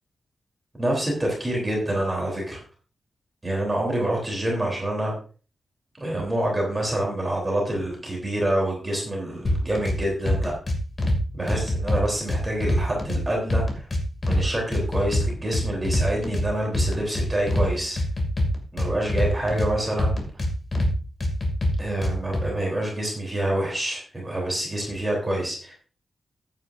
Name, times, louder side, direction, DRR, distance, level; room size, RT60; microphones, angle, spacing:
voice 1, 0.8-2.6 3.4-5.1 6.0-10.5 11.3-13.8 14.2-18.0 18.7-20.3 21.8-25.7, right 1 dB, 15° right, -2 dB, 3.4 m, -27 dB
sound 1, 9.4-10.0 10.3-11.2 11.5-13.2 13.5-14.4 14.7-16.4 16.7-17.7 18.0-19.7 20.0-20.9 21.2-22.4, left 1 dB, 30° left, 2.5 m, -24 dB
14.5 x 9.2 x 2.6 m, 0.38 s
wide cardioid pair, 170°, 0 cm